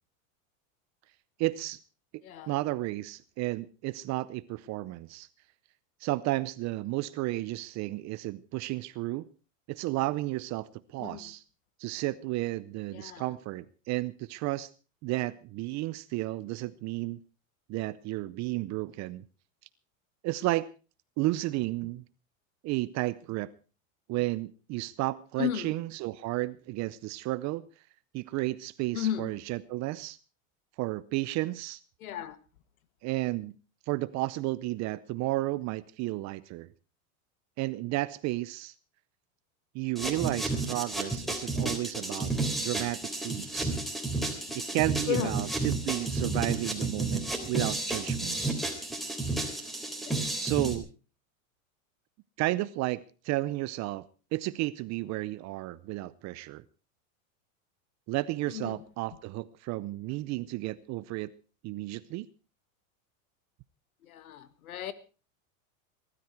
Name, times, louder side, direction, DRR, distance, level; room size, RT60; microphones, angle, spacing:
voice 1, 1.4-1.8 2.5-5.3 6.0-9.3 9.7-11.4 11.8-14.7 15.0-17.2 17.7-19.2 20.2-20.7 21.2-22.0 22.6-23.5 24.1-27.7 28.1-30.2 30.8-31.8 33.0-33.5 33.9-36.7 37.6-38.7 39.7-43.8 44.5-48.6 50.4-50.9 52.4-54.0 54.3-56.6 58.1-61.3 61.6-62.3, right 19 dB, 40° right, 0.7 m, -32 dB
voice 2, 12.9-13.2 25.4-25.7 28.9-29.3 32.0-32.4 45.1-45.4 50.1-50.3 58.5-58.8 64.1-64.9, left 11 dB, 90° left, 1.8 m, -34 dB
sound 1, 40.0-50.8, right 2 dB, ahead, 3.4 m, -32 dB
20.0 x 13.0 x 4.6 m
supercardioid pair, 125°, 41 cm